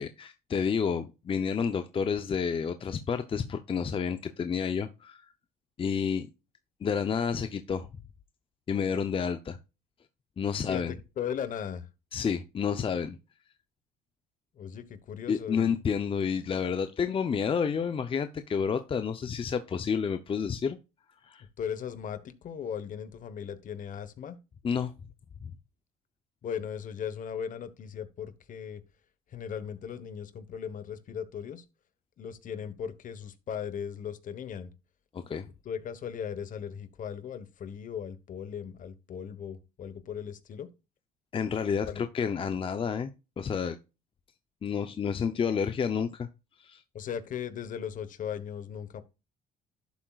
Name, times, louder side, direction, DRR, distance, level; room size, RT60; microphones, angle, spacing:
voice 1, 0.0-5.2 5.8-6.3 6.8-7.9 8.7-9.6 10.4-10.9 12.1-13.2 15.3-20.8 21.2-21.4 24.6-24.9 25.4-25.5 35.1-35.5 41.3-43.1 43.4-43.8 44.6-46.3 46.6-46.8, left 6 dB, 30° left, 0.7 m, -30 dB
voice 2, 10.6-11.9 14.6-15.8 21.6-24.4 26.4-28.8 29.3-31.6 32.2-34.7 35.6-40.7 41.9-42.0 46.9-49.0, left 8 dB, 50° left, 1.2 m, -37 dB
11.5 x 7.3 x 2.4 m
cardioid pair, 110°, 17 cm